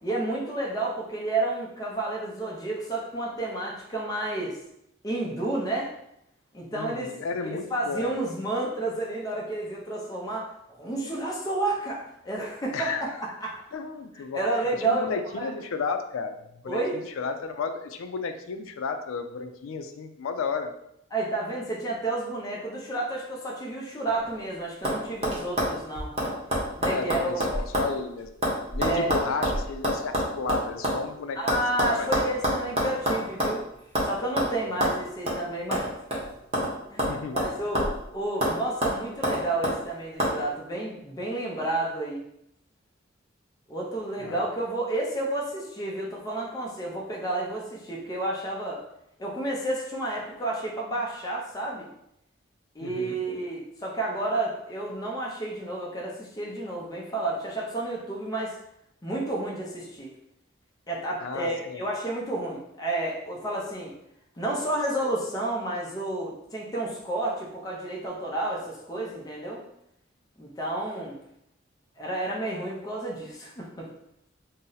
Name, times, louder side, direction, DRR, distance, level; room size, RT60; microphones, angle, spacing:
voice 1, 0.0-4.6 5.0-5.9 6.5-7.1 7.4-12.9 13.4-13.6 14.1-15.5 16.7-17.0 21.1-26.1 26.8-27.5 28.8-29.1 31.3-33.6 34.0-35.9 36.9-37.1 37.3-37.8 38.1-42.2 43.7-48.8 49.2-51.9 52.7-58.6 59.0-60.1 60.9-63.9 64.4-69.6 70.4-71.2 72.0-73.9, right 2 dB, 20° left, -3 dB, 0.5 m, -31 dB
voice 2, 6.7-8.1 12.7-13.3 13.7-14.4 14.8-16.8 17.2-20.7 26.9-28.3 28.7-31.6 31.9-32.1 34.7-34.9 37.1-37.4 44.2-44.4 52.8-53.2 61.2-61.8, left 5 dB, 90° left, 7 dB, 0.4 m, -33 dB
sound 1, 24.1-24.5 24.8-25.0 25.2-27.9 28.2-31.0 31.5-33.6 34.0-34.1 34.4-34.5 34.8-35.0 35.3-35.4 35.7-36.7 37.0-38.0 38.4-38.6 38.8-39.8 40.2-40.3, equal, 30° right, 0.7 m, -27 dB
2.6 x 2.0 x 3.8 m, 0.78 s
head